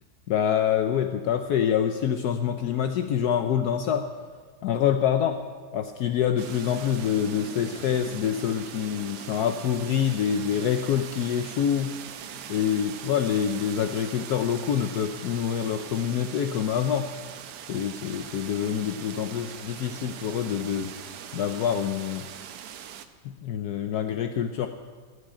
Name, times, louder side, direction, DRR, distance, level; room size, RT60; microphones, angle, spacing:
voice 1, 0.3-4.1 4.6-5.4 5.7-12.0 12.5-17.1 17.7-20.9 21.3-22.2 23.2-24.7, left 9 dB, 70° left, 7 dB, 1.1 m, -26 dB
sound 1, 6.4-23.1, right 9 dB, 70° right, 1.3 m, -41 dB
16.5 x 6.5 x 8.7 m, 1.5 s
omnidirectional pair, 1.9 m